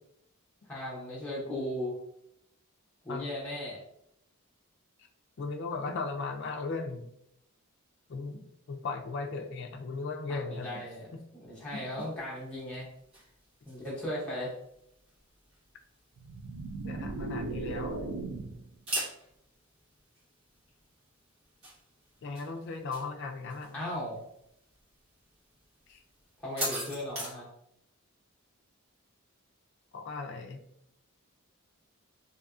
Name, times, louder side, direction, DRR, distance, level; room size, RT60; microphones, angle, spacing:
voice 1, 0.7-2.0 3.0-3.8 10.3-11.1 11.3-12.9 13.6-14.5 23.7-24.2 26.4-27.5, left 1 dB, 5° left, -7 dB, 0.6 m, -37 dB
voice 2, 5.4-7.1 8.1-10.8 11.1-11.2 11.7-12.1 16.8-18.0 22.2-23.8 25.9-26.0 29.9-30.6, left 3 dB, 50° left, 5 dB, 0.3 m, -37 dB
sound 1, 11.5-27.3, right 1 dB, 65° right, 1.3 m, -44 dB
sound 2, 16.2-18.7, right 3 dB, 80° right, 0.3 m, -37 dB
2.7 x 2.5 x 2.3 m, 0.76 s
head